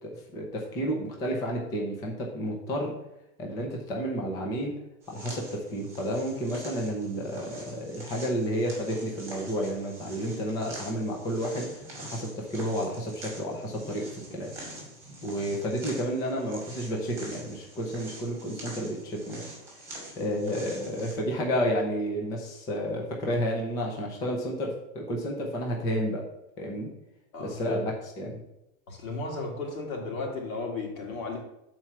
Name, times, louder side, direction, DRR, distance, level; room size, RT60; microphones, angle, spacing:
voice 1, 0.0-3.0 3.4-4.8 5.1-14.5 15.2-19.5 20.2-26.2 26.6-26.9 27.4-28.4, equal, 10° left, 0 dB, 0.4 m, -31 dB
sound 1, 5.0-21.1, right 1 dB, 5° right, 2.3 m, -45 dB
voice 2, 27.3-27.8 28.9-31.4, left 3 dB, 90° left, 0 dB, 2.8 m, -34 dB
6.8 x 4.4 x 6.0 m, 0.86 s
supercardioid pair, 170°, 41 cm